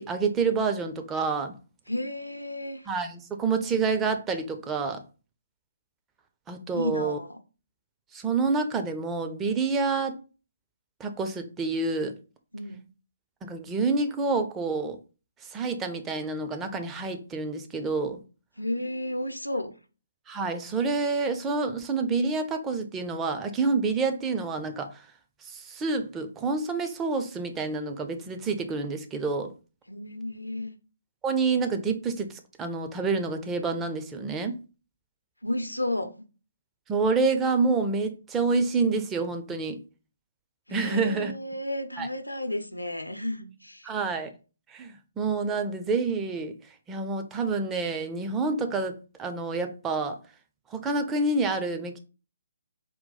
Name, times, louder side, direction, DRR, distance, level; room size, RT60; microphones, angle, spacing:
voice 1, 0.0-1.6 2.9-5.0 6.5-7.2 8.1-10.2 11.0-12.1 13.4-15.0 15.4-18.2 20.3-25.1 25.4-29.5 31.2-34.6 36.9-39.8 40.7-41.3 42.0-42.1 43.8-44.3 44.7-46.5 46.9-50.2 50.7-52.0, right 4 dB, 15° right, 0.5 m, -28 dB
voice 2, 1.9-2.9 6.7-7.4 12.5-12.8 18.6-19.7 29.9-30.7 35.4-36.1 40.7-43.9, left 1 dB, 85° left, 0.7 m, -32 dB
4.0 x 2.3 x 3.9 m
figure-of-eight pair, 135°, 0 cm